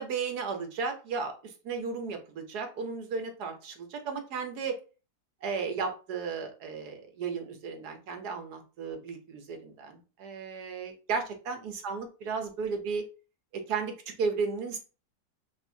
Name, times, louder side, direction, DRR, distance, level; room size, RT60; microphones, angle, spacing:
voice 1, 0.0-4.8 5.4-13.0 13.5-14.8, right 5 dB, 65° right, 5 dB, 1.2 m, -34 dB
5.2 x 2.6 x 2.7 m, 0.34 s
omnidirectional pair, 2.0 m